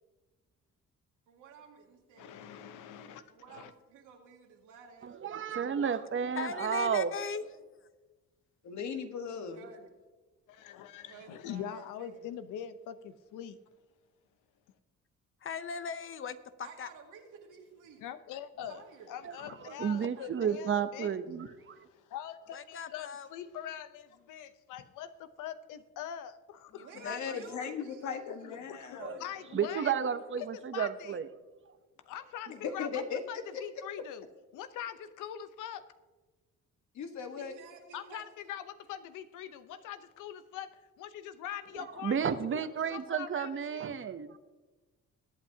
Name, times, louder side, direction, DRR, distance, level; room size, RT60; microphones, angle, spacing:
voice 1, 1.3-2.4 3.3-6.4 9.5-9.9 11.1-12.3 16.6-18.0 18.7-19.1 26.8-28.1 28.4-28.8 32.2-32.3 37.4-38.3, right 5 dB, 90° right, 1 dB, 2.2 m, -53 dB
voice 2, 2.2-3.7 10.5-13.6 18.0-21.2 21.7-26.9 28.7-29.9 30.4-30.5 30.7-31.2 32.0-33.0 33.3-34.3 34.5-35.8 37.9-42.6 42.9-43.9, left 10 dB, 90° left, 11 dB, 0.8 m, -43 dB
voice 3, 5.0-7.1 19.2-19.4 19.6-21.9 29.0-29.2 29.5-31.3 31.7-31.8 41.7-44.4, right 7 dB, 40° right, 11 dB, 0.8 m, -32 dB
voice 4, 6.4-7.4 15.4-16.9 22.5-23.3 26.8-27.4, left 6 dB, 45° left, 12 dB, 0.8 m, -39 dB
voice 5, 8.6-9.6 27.0-29.2 32.5-33.6 36.9-37.5, left 6 dB, 70° left, 6 dB, 1.5 m, -38 dB
22.0 x 8.7 x 2.8 m, 1.2 s
cardioid pair, 90°, 30 cm